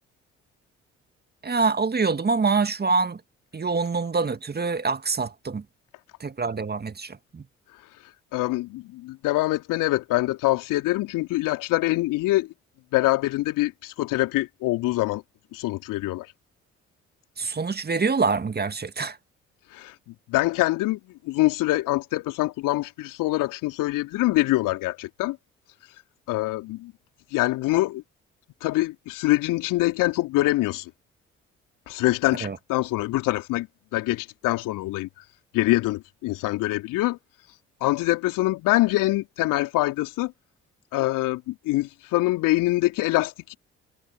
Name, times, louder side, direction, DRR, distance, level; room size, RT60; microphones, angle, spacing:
voice 1, 1.4-3.2 3.5-5.6 6.2-7.4 17.4-19.2 32.4-32.6, right 4 dB, 30° right, 2.0 m, -25 dB
voice 2, 8.3-12.5 12.9-15.2 15.5-16.3 19.7-19.9 20.3-21.0 21.2-25.4 26.3-26.9 27.3-28.0 28.6-30.9 31.9-33.7 33.9-35.1 35.5-37.2 37.8-40.3 40.9-43.5, left 18 dB, 65° left, 3.5 m, -24 dB
figure-of-eight pair, 45°, 34 cm